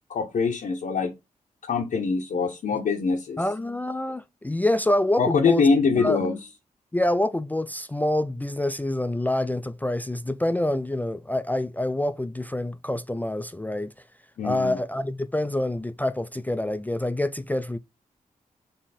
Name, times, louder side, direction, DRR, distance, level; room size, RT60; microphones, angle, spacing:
voice 1, 0.1-1.1 1.7-3.4 5.2-6.4 14.4-14.7, left 5 dB, 65° left, 0.7 m, -23 dB
voice 2, 3.4-5.6 6.0-6.2 6.9-13.9 14.4-17.8, left 1 dB, 10° left, 0.3 m, -26 dB
4.3 x 2.9 x 4.1 m
supercardioid pair, 45°, 15 cm